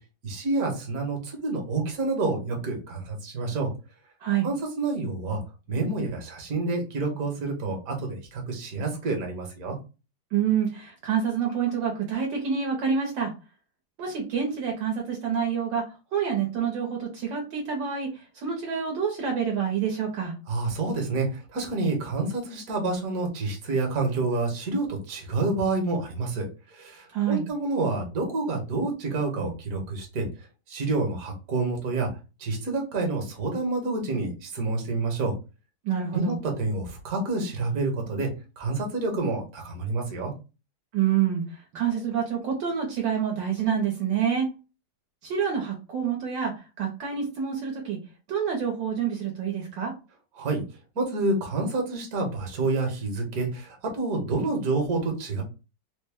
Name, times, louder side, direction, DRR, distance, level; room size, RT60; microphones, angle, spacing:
voice 1, 0.2-3.7 4.4-5.4 5.7-9.8 20.5-30.3 30.7-32.1 32.4-35.3 36.1-38.3 38.6-40.3 50.4-50.6 50.9-55.4, right 3 dB, 55° right, 1 dB, 1.4 m, -28 dB
voice 2, 10.3-13.3 14.0-20.3 27.1-27.4 35.8-36.4 40.9-44.5 45.2-48.0 48.3-49.9, right 7 dB, 70° right, 0 dB, 1.5 m, -27 dB
3.8 x 2.1 x 3.4 m, 0.31 s
omnidirectional pair, 2.2 m